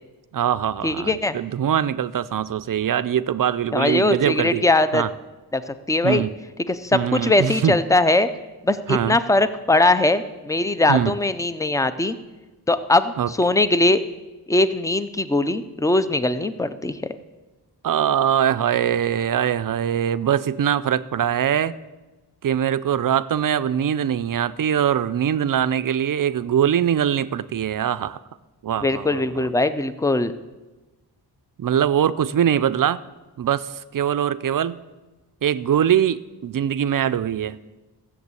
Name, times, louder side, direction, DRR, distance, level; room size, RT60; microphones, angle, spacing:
voice 1, 0.3-4.6 4.9-5.1 6.0-6.3 6.9-7.8 8.9-9.2 10.9-11.2 13.2-13.3 17.8-21.7 22.4-28.2 28.6-29.3 31.6-33.0 33.4-34.8 35.4-37.6, right 9 dB, 55° right, 14 dB, 0.5 m, -22 dB
voice 2, 0.8-1.4 3.7-5.0 5.5-6.3 6.7-8.3 8.6-12.2 12.7-14.0 14.5-17.0 28.8-30.3, left 2 dB, 10° left, 12 dB, 0.4 m, -20 dB
15.0 x 7.2 x 8.2 m, 1.2 s
wide cardioid pair, 175°, 40 cm